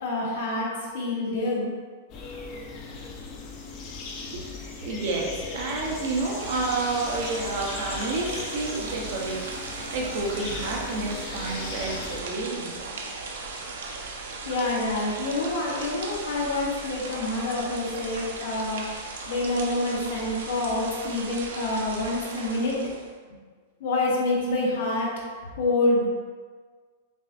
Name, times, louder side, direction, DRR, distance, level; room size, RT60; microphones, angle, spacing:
voice 1, 0.0-1.7 14.5-19.0 19.3-22.8 23.8-25.1 25.5-26.1, left 2 dB, 60° left, -4 dB, 1.1 m, -27 dB
sound 1, 2.1-12.2, left 4 dB, 25° left, 0.4 m, -38 dB
voice 2, 4.8-13.0, right 3 dB, 45° right, -1 dB, 0.6 m, -30 dB
sound 2, 5.5-23.1, right 3 dB, 85° right, 0.6 m, -37 dB
6.0 x 2.5 x 2.4 m, 1.5 s
supercardioid pair, 180°, 0 cm